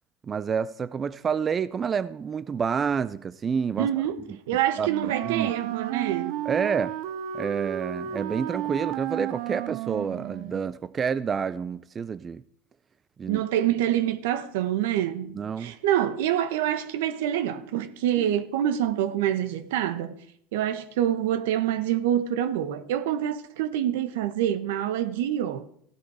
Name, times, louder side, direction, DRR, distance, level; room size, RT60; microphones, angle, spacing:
voice 1, 0.3-3.9 4.8-5.5 6.5-6.9 7.3-12.4 13.2-13.4 15.3-15.7, right 6 dB, 25° right, 0.4 m, -28 dB
voice 2, 3.8-4.2 4.5-6.4 13.3-20.1 20.5-25.7, right 11 dB, 85° right, 1.2 m, -26 dB
Wind instrument woodwind instrument, 4.7-10.7, right 12 dB, 65° right, 0.8 m, -33 dB
15.5 x 9.5 x 4.9 m
supercardioid pair, 120°, 0 cm